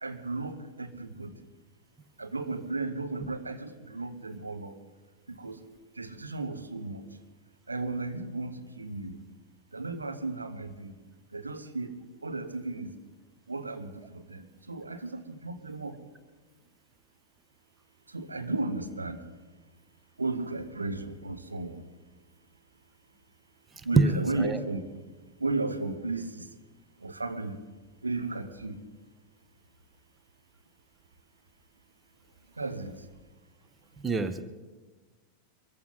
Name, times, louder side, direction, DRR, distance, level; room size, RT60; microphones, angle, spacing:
voice 1, 0.0-1.5 2.2-4.8 5.3-5.6 5.9-7.1 7.7-9.2 9.7-11.0 11.3-11.9 12.2-12.9 13.5-16.0 18.1-19.3 20.2-21.9 23.8-25.0 25.4-26.5 27.0-27.6 28.0-28.8 32.5-33.1, right 3 dB, 80° right, 6 dB, 1.2 m, -35 dB
voice 2, 23.9-24.6 34.0-34.4, right 3 dB, 15° right, 12 dB, 0.9 m, -25 dB
23.0 x 14.5 x 4.1 m, 1.3 s
figure-of-eight pair, 90°, 0 cm